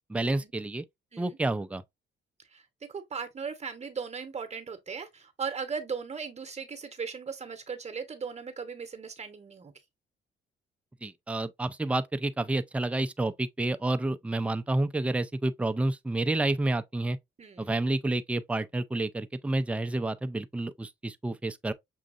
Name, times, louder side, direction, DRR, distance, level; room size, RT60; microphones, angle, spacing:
voice 1, 0.1-0.8 1.2-1.8 11.0-17.2 17.6-21.7, right 2 dB, 5° right, 0.4 m, -29 dB
voice 2, 2.9-9.7 17.4-17.7, right 5 dB, 35° right, 0.9 m, -38 dB
6.2 x 2.7 x 2.4 m
cardioid pair, 90°, 20 cm